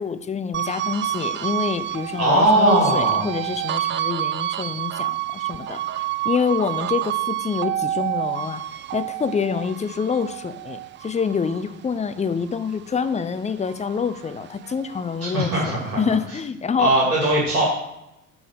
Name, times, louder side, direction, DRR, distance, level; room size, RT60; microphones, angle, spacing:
voice 1, 0.0-5.8 6.2-8.6 8.9-17.0, left 6 dB, 15° left, 12 dB, 0.6 m, -26 dB
sound 1, 0.5-13.2 13.6-15.2, right 12 dB, 30° right, 0.4 m, -29 dB
voice 2, 2.2-3.2 15.3-16.0 16.8-17.6, right 1 dB, 85° right, -5 dB, 2.5 m, -19 dB
9.1 x 3.9 x 6.5 m, 0.86 s
hypercardioid pair, 60°, 43 cm